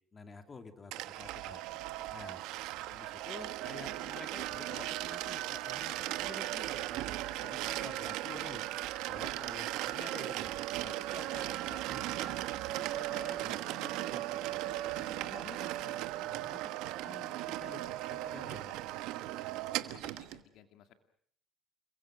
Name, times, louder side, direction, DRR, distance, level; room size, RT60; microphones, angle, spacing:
voice 1, 0.1-1.6 2.1-2.4 2.9-8.6 9.0-12.4 12.7-14.6 15.2-18.7, left 4 dB, 25° left, 7 dB, 2.8 m, -50 dB
sound 1, 0.9-20.4, right 15 dB, 90° right, 1.3 m, -37 dB
voice 2, 7.2-8.1 11.2-11.4 14.6-15.7 19.8-20.9, left 10 dB, 75° left, 8 dB, 2.4 m, -58 dB
29.5 x 23.0 x 6.2 m, 0.63 s
cardioid pair, 120°, 0 cm